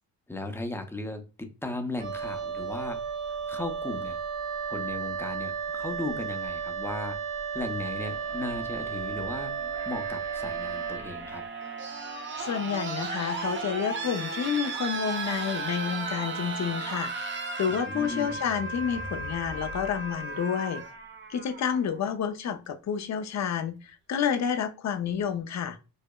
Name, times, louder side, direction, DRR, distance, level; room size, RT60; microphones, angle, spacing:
voice 1, 0.3-3.0 3.3-4.2 4.7-7.2 7.5-9.6 9.9-11.4 17.7-18.4, left 2 dB, 5° left, 0.6 m, -36 dB
Wind instrument woodwind instrument, 2.0-11.1, right 6 dB, 90° right, 1.0 m, -34 dB
sound 1, 8.0-22.0 23.2-23.3, right 3 dB, 30° right, 0.6 m, -36 dB
voice 2, 12.4-20.8 21.3-25.8, left 7 dB, 50° left, 0.5 m, -30 dB
sound 2, 17.8-20.8, left 2 dB, 85° left, 1.4 m, -44 dB
4.8 x 2.1 x 2.2 m
cardioid pair, 90°, 37 cm